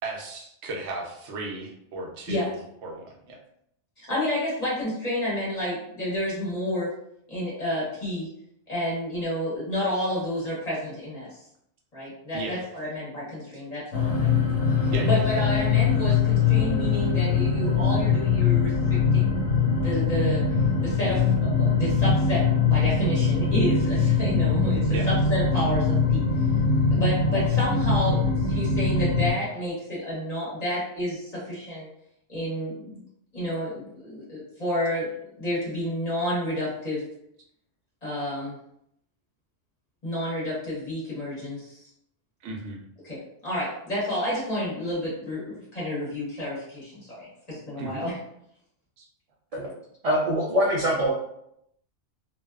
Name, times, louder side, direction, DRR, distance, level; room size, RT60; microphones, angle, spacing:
voice 1, 0.0-2.6 2.8-3.4 12.3-12.6 14.9-15.4 24.9-25.1 42.4-42.8 47.8-48.0 49.0-49.1, right 2 dB, 80° right, 1 dB, 0.9 m, -35 dB
voice 2, 4.0-6.9 7.3-8.3 8.7-11.3 11.9-14.5 14.8-19.3 19.8-20.5 20.8-26.2 26.9-31.9 32.3-33.0 33.3-37.0 38.0-38.5 40.0-41.8 43.0-48.1, left 1 dB, 35° left, -8 dB, 1.2 m, -30 dB
sound 1, 13.9-29.3, left 5 dB, 80° left, 1.2 m, -22 dB
voice 3, 50.0-51.1, equal, 50° right, -5 dB, 0.4 m, -23 dB
2.6 x 2.2 x 2.3 m, 0.74 s
omnidirectional pair, 1.2 m